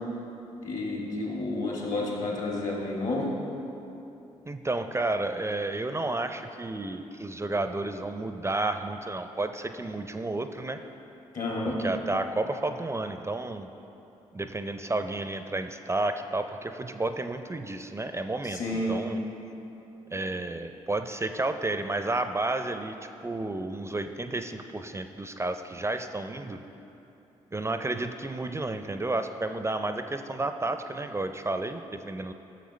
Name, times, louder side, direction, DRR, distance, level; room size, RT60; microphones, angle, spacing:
voice 1, 0.6-3.3 11.3-11.8 18.5-19.0, left 2 dB, 60° left, -3 dB, 1.9 m, -30 dB
voice 2, 4.5-10.8 11.6-13.7 14.3-19.2 20.1-22.9 23.2-26.6 27.5-32.3, right 2 dB, 20° right, 8 dB, 0.4 m, -31 dB
10.0 x 6.7 x 3.2 m, 2.9 s
hypercardioid pair, 45°, 14 cm